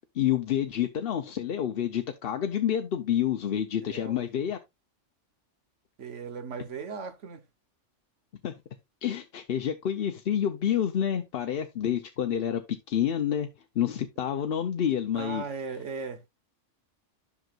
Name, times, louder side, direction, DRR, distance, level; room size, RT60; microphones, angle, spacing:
voice 1, 0.1-4.6 8.4-8.5 9.0-12.6 12.9-13.5 13.8-15.4, left 10 dB, 60° left, 0.8 m, -28 dB
voice 2, 3.8-4.3 6.0-7.4 15.1-16.3, right 5 dB, 75° right, 1.4 m, -37 dB
10.5 x 6.1 x 2.4 m
omnidirectional pair, 1.3 m